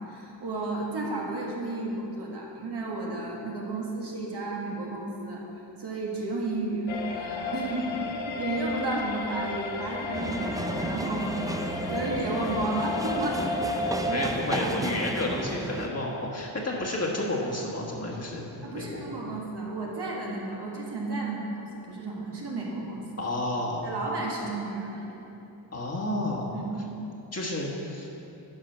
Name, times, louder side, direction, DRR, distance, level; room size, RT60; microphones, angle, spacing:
voice 1, 0.0-5.4 5.8-7.9 8.3-11.3 11.9-13.8 14.0-14.3 14.6-14.9 18.6-23.1 23.8-25.1 26.5-26.8, right 2 dB, 60° right, -3 dB, 1.8 m, -32 dB
sound 1, 6.9-14.4, left 3 dB, 90° left, 0.8 m, -33 dB
sound 2, 10.1-15.9, right 2 dB, 10° right, 0.4 m, -33 dB
voice 2, 14.0-19.1 23.2-24.0 25.7-26.5 27.3-28.1, left 1 dB, 35° left, -3 dB, 1.7 m, -31 dB
11.5 x 4.8 x 5.8 m, 2.9 s
cardioid pair, 75°, 46 cm